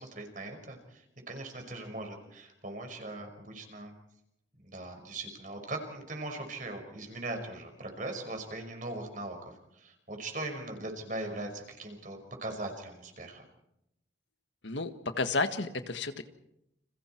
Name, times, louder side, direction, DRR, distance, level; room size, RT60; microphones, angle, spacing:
voice 1, 0.0-3.9 4.6-13.4, right 2 dB, 45° right, 4 dB, 5.5 m, -40 dB
voice 2, 14.6-16.2, left 3 dB, 80° left, 8 dB, 1.7 m, -32 dB
30.0 x 28.0 x 4.6 m, 0.82 s
head